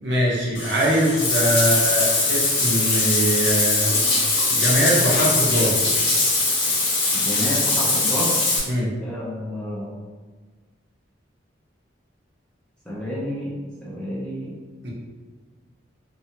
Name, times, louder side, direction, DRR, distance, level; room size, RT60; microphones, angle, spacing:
voice 1, 0.0-3.9 4.5-6.0 8.6-8.9 14.8-14.9, equal, 60° right, -4 dB, 0.7 m, -22 dB
Bathtub (filling or washing), 0.5-8.6, left 3 dB, 75° left, 0.7 m, -21 dB
voice 2, 7.1-8.4 9.0-9.9 12.9-13.5 13.8-14.6, equal, 5° left, -7 dB, 0.4 m, -30 dB
2.5 x 2.3 x 2.7 m, 1.4 s
head